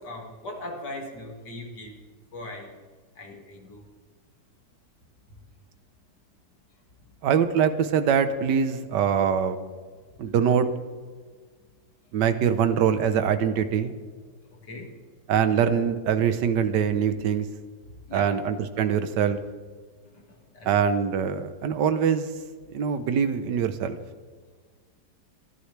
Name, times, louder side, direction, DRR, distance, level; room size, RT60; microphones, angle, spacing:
voice 1, 0.0-2.0 2.3-2.8 3.2-3.9 5.3-5.4 14.5-15.0 18.1-18.4 20.1-21.0, left 1 dB, 60° left, 1 dB, 2.8 m, -40 dB
voice 2, 7.2-9.6 10.2-10.7 12.1-13.9 15.3-17.5 18.1-19.4 20.6-22.3 22.7-24.0, right 7 dB, 65° right, 10 dB, 1.5 m, -23 dB
25.5 x 11.5 x 3.4 m, 1.5 s
omnidirectional pair, 2.1 m